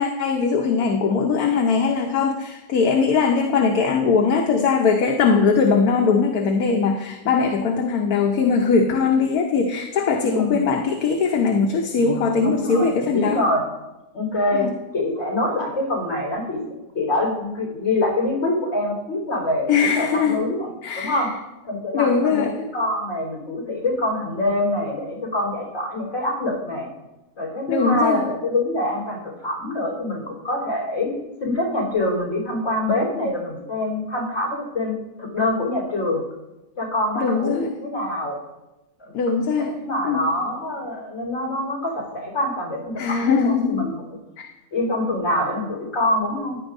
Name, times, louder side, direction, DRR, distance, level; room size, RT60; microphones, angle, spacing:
voice 1, 0.0-13.4 14.6-14.7 19.7-20.4 20.8-21.3 21.9-22.5 27.7-28.2 37.2-37.7 39.1-39.8 40.0-40.2 43.0-43.9 44.4-44.5, left 5 dB, 80° left, 3 dB, 1.3 m, -20 dB
voice 2, 10.2-10.6 12.4-13.7 14.1-14.7 14.9-16.6 16.9-20.7 20.9-21.3 21.7-26.9 27.4-31.1 31.4-34.9 35.2-36.2 36.8-38.4 39.0-39.1 39.6-44.2 44.7-46.6, left 1 dB, 55° left, -3 dB, 4.2 m, -25 dB
15.0 x 10.5 x 2.6 m, 0.99 s
omnidirectional pair, 1.6 m